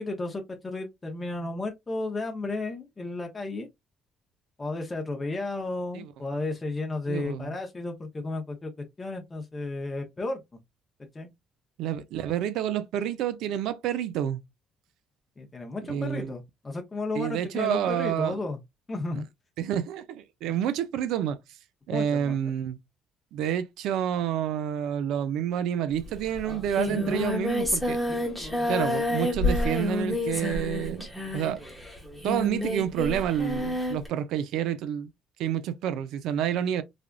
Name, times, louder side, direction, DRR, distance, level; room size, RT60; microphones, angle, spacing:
voice 1, 0.0-3.7 4.6-8.7 9.0-10.4 11.1-11.3 15.4-18.6 18.9-19.2 21.9-22.4, left 2 dB, 15° left, 0.6 m, -33 dB
voice 2, 7.1-7.5 11.8-14.4 15.9-16.3 17.2-18.4 19.6-21.4 21.9-22.8 23.3-28.0 28.7-31.1 31.3-31.6 32.2-35.1 35.4-36.8, right 10 dB, 80° right, 0.4 m, -29 dB
Singing, 26.0-26.1 26.3-34.1, left 1 dB, ahead, 1.0 m, -29 dB
3.3 x 2.4 x 2.2 m
cardioid pair, 155°, 0 cm